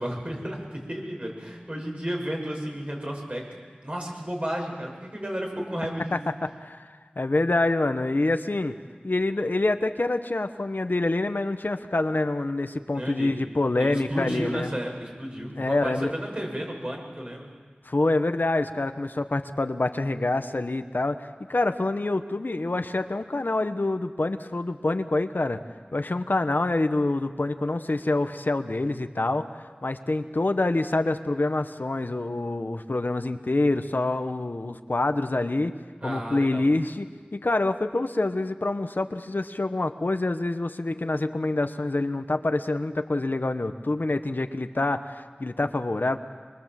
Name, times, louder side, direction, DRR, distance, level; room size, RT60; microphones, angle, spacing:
voice 1, 0.0-6.3 12.9-13.4 13.8-17.5 36.0-36.6, equal, 40° right, -1 dB, 7.3 m, -33 dB
voice 2, 6.1-8.7 9.0-14.7 15.6-16.1 17.8-25.6 25.9-35.7 36.0-46.2, left 2 dB, 70° left, 8 dB, 1.1 m, -26 dB
24.5 x 23.5 x 7.7 m, 1.5 s
wide cardioid pair, 40°, 3 cm